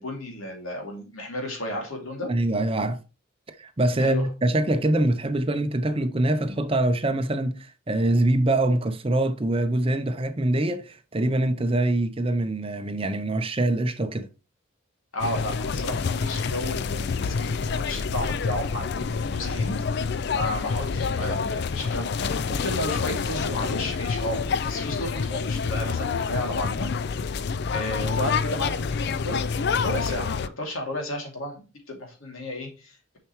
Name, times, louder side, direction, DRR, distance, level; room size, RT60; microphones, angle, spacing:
voice 1, 0.0-2.3 4.0-4.3 15.1-26.9 27.2-27.4 27.7-29.4 29.7-33.0, left 1 dB, 85° left, 2.5 m, -33 dB
voice 2, 2.3-3.0 3.5-14.3, right 1 dB, 25° right, 0.6 m, -24 dB
sound 1, 15.2-30.5, left 5 dB, 55° left, 0.4 m, -27 dB
6.8 x 5.8 x 3.0 m
head